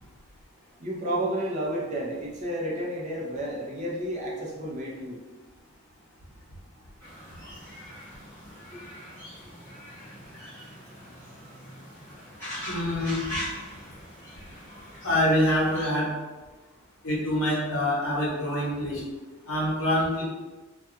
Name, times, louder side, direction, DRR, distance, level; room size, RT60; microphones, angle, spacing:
voice 1, 0.8-5.2 8.7-8.8, right 1 dB, 30° right, -3 dB, 0.4 m, -31 dB
sound 1, 7.0-15.9, equal, 10° left, 0.9 m, -41 dB
voice 2, 12.7-13.2 15.0-16.1 17.0-19.0 19.5-20.2, left 1 dB, 70° left, -6 dB, 0.9 m, -25 dB
2.3 x 2.2 x 2.7 m, 1.2 s
head